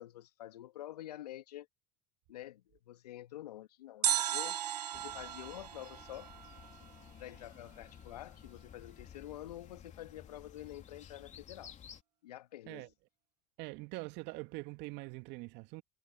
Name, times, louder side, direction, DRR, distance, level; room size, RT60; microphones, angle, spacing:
voice 1, 0.0-1.7 2.3-4.6 4.9-6.3 7.2-11.7 12.2-12.9, left 13 dB, 80° left, 1.5 m, -48 dB
sound 1, 4.0-7.1 7.4-7.5, right 11 dB, 90° right, 0.5 m, -36 dB
sound 2, 4.9-12.0, left 9 dB, 35° left, 3.0 m, -54 dB
voice 2, 13.6-15.8, right 24 dB, 60° right, 2.5 m, -43 dB
hypercardioid pair, 75°, 20 cm